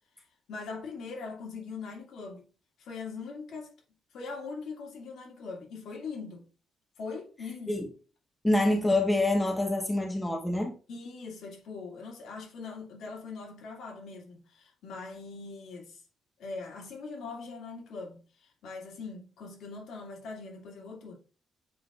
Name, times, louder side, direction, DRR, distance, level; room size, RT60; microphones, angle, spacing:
voice 1, 0.5-2.5 2.8-3.7 4.1-6.4 7.0-7.8 10.9-16.0 16.4-21.2, left 4 dB, 70° left, 2.1 m, -41 dB
voice 2, 8.4-10.7, left 1 dB, 10° left, 0.9 m, -26 dB
7.6 x 5.5 x 2.4 m
cardioid pair, 160°, 0 cm